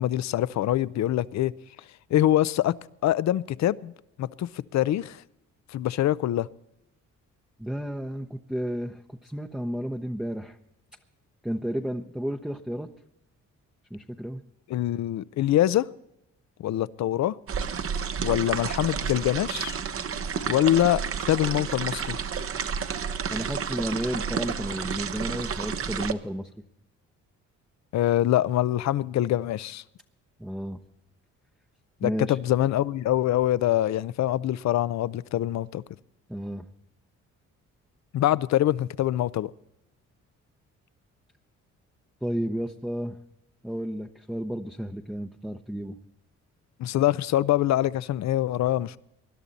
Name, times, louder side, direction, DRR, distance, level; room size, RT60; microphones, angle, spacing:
voice 1, 0.0-1.5 2.1-2.7 3.0-3.9 4.2-5.2 5.7-6.5 14.7-15.9 16.6-17.4 18.2-19.8 20.5-21.0 21.3-22.2 27.9-29.8 32.0-35.8 38.1-39.5 46.8-49.0, left 13 dB, 65° left, 0.6 m, -24 dB
voice 2, 7.6-10.6 11.4-12.9 13.9-14.4 23.3-26.5 30.4-30.8 32.0-32.4 36.3-36.7 42.2-43.2 43.6-46.0, equal, ahead, 0.7 m, -32 dB
sound 1, 17.5-26.1, right 6 dB, 45° right, 1.0 m, -31 dB
20.5 x 11.5 x 4.1 m
cardioid pair, 90°, 30 cm